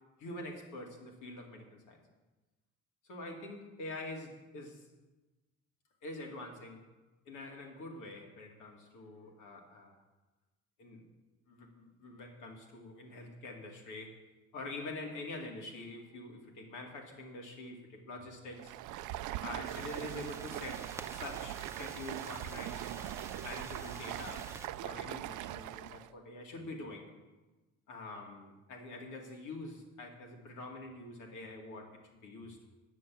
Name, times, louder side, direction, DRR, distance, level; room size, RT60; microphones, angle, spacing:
voice 1, 0.2-2.0 3.0-4.9 6.0-6.8 7.3-10.0 10.8-11.1 11.5-14.2 14.5-18.8 19.4-23.0 23.4-24.5 24.8-27.1 27.9-32.7, left 2 dB, 85° left, 1 dB, 2.5 m, -45 dB
Stream, 18.5-26.1, right 14 dB, 80° right, 0.5 m, -41 dB
sound 1, 19.6-24.7, right 2 dB, 10° right, 0.9 m, -50 dB
9.6 x 7.7 x 7.7 m, 1.2 s
cardioid pair, 90°, 30 cm